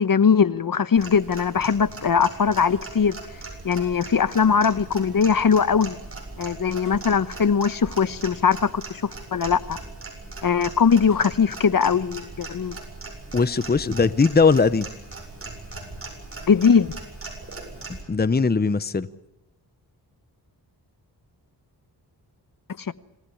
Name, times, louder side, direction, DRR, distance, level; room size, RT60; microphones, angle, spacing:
voice 1, 0.0-3.1 3.6-6.0 6.4-9.8 10.4-12.7 16.5-16.9 22.8-22.9, left 6 dB, 55° left, 1.0 m, -20 dB
Clock, 0.9-18.0, right 3 dB, 35° right, 7.6 m, -39 dB
voice 2, 13.3-14.9 18.1-19.1, left 4 dB, 25° left, 0.9 m, -19 dB
26.5 x 17.5 x 8.6 m
wide cardioid pair, 90°, 41 cm